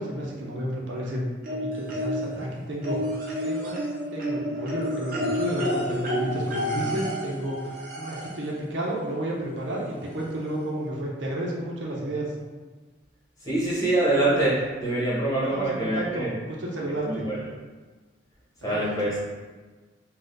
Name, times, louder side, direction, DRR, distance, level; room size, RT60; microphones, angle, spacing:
voice 1, 0.0-3.8 4.1-12.3 15.5-17.3 18.6-18.8, right 1 dB, 75° right, -3 dB, 0.9 m, -31 dB
sound 1, 1.4-2.4 2.8-8.5 9.7-9.8 10.2-10.3, equal, 45° right, 0.8 m, -30 dB
voice 2, 13.4-16.3 17.1-17.4 18.6-19.1, right 1 dB, 20° left, -8 dB, 1.2 m, -24 dB
4.0 x 2.4 x 3.8 m, 1.4 s
head